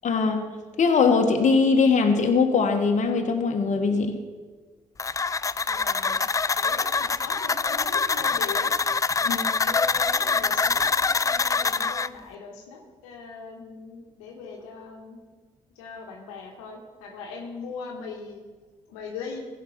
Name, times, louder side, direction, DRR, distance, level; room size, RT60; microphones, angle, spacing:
voice 1, 0.0-4.1 9.3-9.4, left 4 dB, 50° left, 5 dB, 1.3 m, -21 dB
sound 1, 5.0-12.1, left 4 dB, 20° left, 0.3 m, -25 dB
voice 2, 5.7-6.2 6.6-8.7 9.2-15.2 15.7-18.4 18.9-19.5, left 4 dB, 85° left, 1 dB, 1.2 m, -40 dB
15.0 x 5.7 x 5.7 m, 1.4 s
hypercardioid pair, 45°, 15 cm